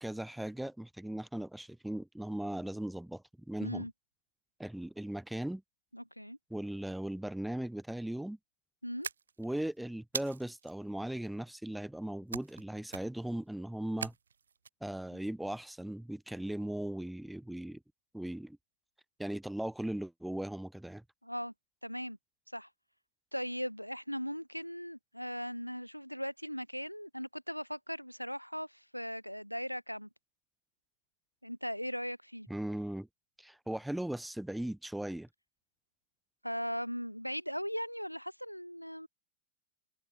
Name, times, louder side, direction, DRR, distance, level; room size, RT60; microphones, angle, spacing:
voice 1, 0.0-3.9 4.6-5.6 6.5-8.4 9.4-14.1 14.8-17.8 18.1-18.6 19.2-21.0 32.5-33.1 33.4-35.3, right 1 dB, 5° right, 0.8 m, -38 dB
voice 2, 3.6-3.9 5.9-6.4 8.8-9.1 21.2-21.5 21.8-22.2 22.5-22.7 23.3-30.1 31.4-32.5 36.4-39.1, equal, 90° left, 0.8 m, -38 dB
sound 1, 9.0-9.6 10.1-10.7 12.3-12.6 12.9-13.3 14.0-14.7, right 6 dB, 70° right, 0.6 m, -40 dB
figure-of-eight pair, 90°, 0 cm